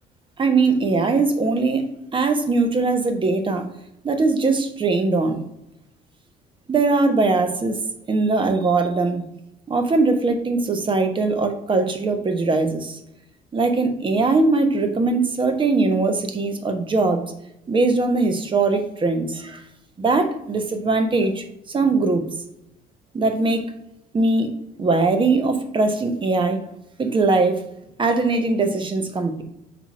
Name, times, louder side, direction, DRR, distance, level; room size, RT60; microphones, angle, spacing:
voice 1, 0.4-3.7 4.0-5.4 6.7-7.8 8.1-9.2 9.7-13.0 13.5-17.2 17.7-19.6 20.0-22.2 23.1-23.6 24.1-24.5 24.8-26.6 27.0-27.6 28.0-29.4, right 3 dB, 30° right, 7 dB, 1.0 m, -21 dB
5.3 x 4.3 x 4.8 m, 0.84 s
cardioid pair, 110°, 17 cm